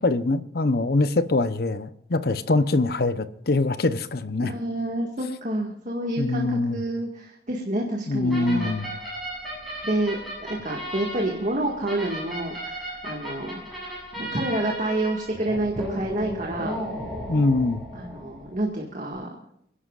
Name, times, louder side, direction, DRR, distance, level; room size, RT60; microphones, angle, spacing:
voice 1, 0.0-4.5 6.2-6.8 8.1-9.0 17.3-17.8, left 2 dB, 60° left, 0.8 m, -23 dB
voice 2, 4.4-8.7 9.8-13.5 14.1-16.8 17.9-19.3, right 1 dB, 45° right, 1.9 m, -28 dB
sound 1, 8.3-18.6, equal, ahead, 7.5 m, -35 dB
29.0 x 11.5 x 2.5 m
head